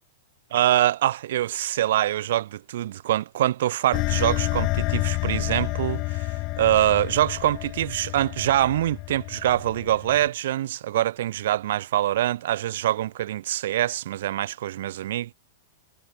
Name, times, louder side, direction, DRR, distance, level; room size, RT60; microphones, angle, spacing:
voice 1, 0.5-15.3, right 13 dB, 60° right, 0.7 m, -24 dB
sound 1, 3.9-10.3, left 23 dB, 30° left, 1.0 m, -29 dB
supercardioid pair, 175°, 0 cm